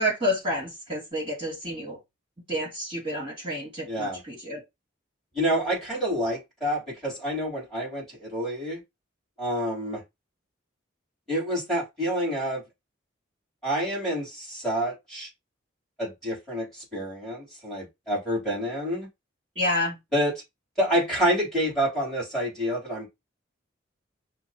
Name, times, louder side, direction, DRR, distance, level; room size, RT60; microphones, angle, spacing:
voice 1, 0.0-2.0 2.5-4.6 19.6-20.0, equal, 25° right, 2.5 m, -29 dB
voice 2, 3.9-4.2 5.3-8.8 9.4-10.0 11.3-12.6 13.6-15.3 16.0-19.1 20.1-20.3 20.8-23.1, equal, ahead, 3.1 m, -28 dB
5.9 x 2.4 x 2.8 m
head